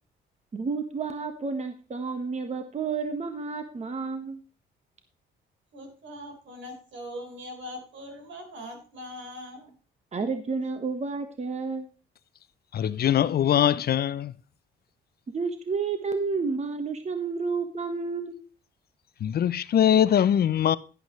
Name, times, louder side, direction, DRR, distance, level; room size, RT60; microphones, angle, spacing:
voice 1, 0.5-4.4 10.1-11.9 15.3-18.4, right 4 dB, 35° right, 1.3 m, -30 dB
voice 2, 5.7-9.7, equal, 70° right, 4.2 m, -41 dB
voice 3, 12.7-14.3 19.2-20.8, left 10 dB, 50° left, 0.5 m, -22 dB
11.0 x 11.0 x 3.1 m
cardioid pair, 90°, 20 cm